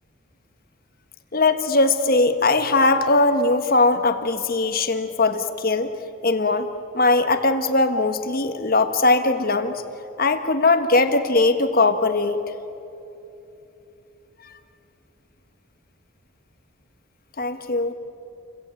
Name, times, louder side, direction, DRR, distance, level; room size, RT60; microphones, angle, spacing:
voice 1, 1.3-5.9 6.2-6.7 6.9-9.8 10.2-12.4 17.4-17.9, left 3 dB, 45° left, 8 dB, 1.5 m, -20 dB
29.0 x 23.0 x 9.2 m, 2.9 s
head